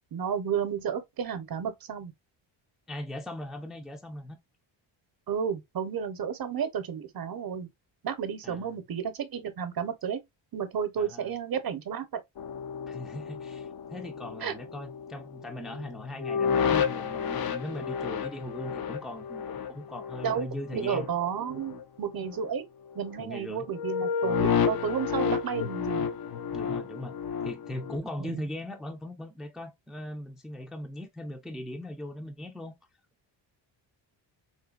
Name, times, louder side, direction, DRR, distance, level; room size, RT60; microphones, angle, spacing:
voice 1, 0.1-2.1 5.3-7.7 8.0-10.2 10.5-12.2 14.4-14.5 20.2-20.5 20.7-22.6 22.9-26.1 28.2-28.4, right 7 dB, 45° right, 0.8 m, -32 dB
voice 2, 2.9-4.4 8.4-8.8 11.0-11.3 12.9-21.1 23.2-23.7 26.5-27.2 27.4-32.7, left 1 dB, ahead, 0.5 m, -39 dB
sound 1, 12.4-21.8 22.1-22.5 22.9-23.3 23.7-28.0, left 7 dB, 50° left, 0.6 m, -31 dB
4.0 x 2.2 x 2.3 m
cardioid pair, 85°, 49 cm